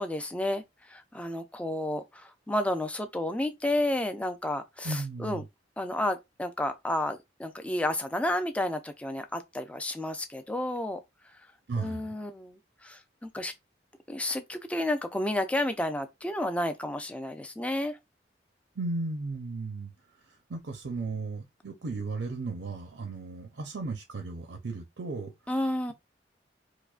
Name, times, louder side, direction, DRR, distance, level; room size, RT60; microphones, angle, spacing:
voice 1, 0.0-5.4 5.8-11.0 11.8-13.5 14.1-18.0 25.5-25.9, left 1 dB, 5° left, 0.4 m, -31 dB
voice 2, 4.8-5.4 11.7-12.2 18.8-19.9 20.5-25.3, right 3 dB, 75° right, 0.6 m, -35 dB
4.7 x 2.1 x 2.4 m
head